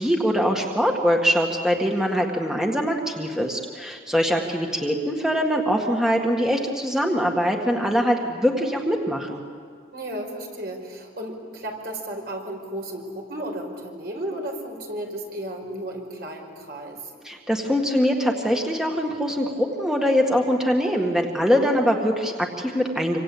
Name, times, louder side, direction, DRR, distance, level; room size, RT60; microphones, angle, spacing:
voice 1, 0.0-9.4 17.2-23.2, equal, 5° right, 1 dB, 1.8 m, -23 dB
voice 2, 9.9-17.1, right 1 dB, 60° right, 2 dB, 5.5 m, -34 dB
27.0 x 25.5 x 8.7 m, 2.1 s
head